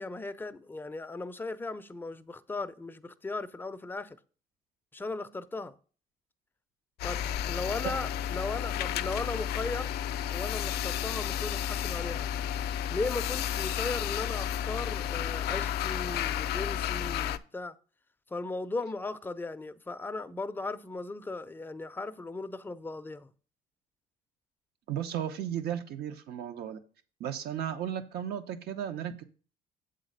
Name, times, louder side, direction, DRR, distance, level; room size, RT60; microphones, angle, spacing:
voice 1, 0.0-4.2 4.9-5.7 7.0-9.9 10.3-12.3 12.9-17.8 18.3-23.3, left 3 dB, 10° left, 0.5 m, -37 dB
sound 1, 7.0-17.4, left 10 dB, 70° left, 0.4 m, -32 dB
voice 2, 24.9-26.8 27.2-29.2, right 9 dB, 70° right, 0.9 m, -35 dB
7.7 x 3.9 x 6.5 m
cardioid pair, 110°, 17 cm